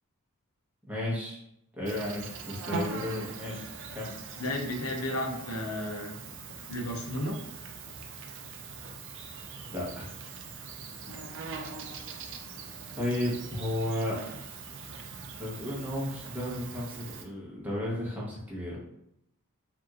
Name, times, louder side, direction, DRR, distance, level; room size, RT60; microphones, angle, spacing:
voice 1, 0.8-1.4 1.8-4.1 9.7-10.1 13.0-14.2 15.4-18.8, left 1 dB, 5° right, -6 dB, 0.9 m, -33 dB
Insect, 1.8-17.2, right 4 dB, 55° right, 0.4 m, -42 dB
voice 2, 4.4-6.2 6.7-7.4 11.0-11.2, left 1 dB, 65° left, 1 dB, 0.7 m, -33 dB
3.4 x 2.8 x 2.4 m, 0.79 s
head